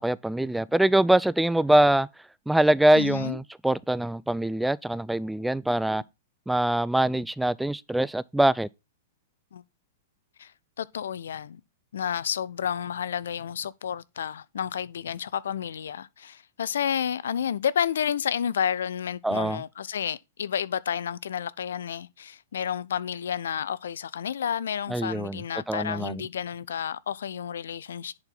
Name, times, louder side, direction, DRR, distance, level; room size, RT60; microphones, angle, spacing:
voice 1, 0.0-2.1 2.5-6.0 6.5-8.7 19.2-19.6 24.9-25.4 25.7-26.2, right 1 dB, 5° right, 0.3 m, -23 dB
voice 2, 3.0-3.4 9.5-9.6 10.4-10.5 10.8-11.6 11.9-28.1, left 8 dB, 75° left, 0.5 m, -31 dB
10.5 x 4.6 x 3.9 m
hypercardioid pair, 110°, 0 cm